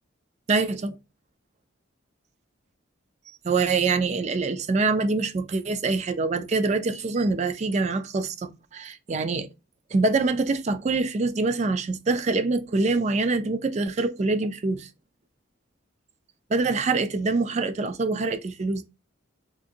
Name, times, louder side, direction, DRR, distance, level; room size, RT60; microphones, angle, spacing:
voice 1, 0.5-0.9 3.4-9.5 9.9-14.9 16.5-18.8, right 3 dB, 35° right, 0.3 m, -25 dB
3.6 x 2.5 x 2.7 m
head